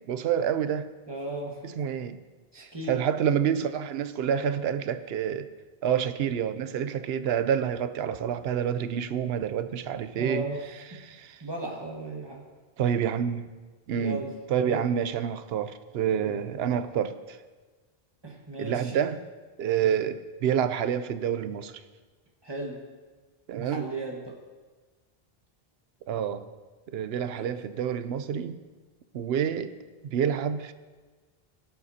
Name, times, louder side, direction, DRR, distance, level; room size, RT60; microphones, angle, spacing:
voice 1, 0.1-0.9 1.6-2.2 2.6-5.5 5.8-10.4 11.0-11.4 12.8-13.5 13.9-14.2 14.5-17.4 18.6-19.2 19.6-21.8 23.5-23.9 26.1-26.5 26.9-28.6 29.1-29.7 30.0-30.7, right 8 dB, 80° right, 12 dB, 0.8 m, -28 dB
voice 2, 1.1-1.6 2.5-3.0 4.3-4.5 10.2-10.6 11.4-12.4 14.0-14.3 14.6-14.8 16.2-16.4 18.2-18.9 22.4-22.8 23.5-24.4 27.3-27.5, right 2 dB, 25° right, -2 dB, 1.6 m, -36 dB
17.0 x 7.9 x 2.8 m, 1.3 s
omnidirectional pair, 1.0 m